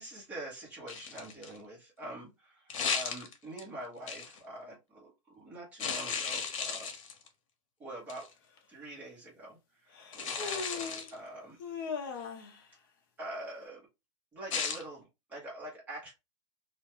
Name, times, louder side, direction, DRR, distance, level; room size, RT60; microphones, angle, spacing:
voice 1, 0.0-6.9 7.8-8.3 8.7-11.6 13.2-13.9 14.3-16.1, right 1 dB, 10° right, -5 dB, 0.8 m, -45 dB
sound 1, 0.9-1.6 2.7-3.6 4.1-4.4 5.8-7.3 8.1-8.3 10.1-11.1 14.5-14.8, left 6 dB, 85° left, 0.8 m, -35 dB
Human voice, 8.6-8.7 9.9-11.1 11.6-12.6, left 5 dB, 40° left, 0.5 m, -39 dB
2.3 x 2.1 x 2.8 m, 0.24 s
supercardioid pair, 180°, 17 cm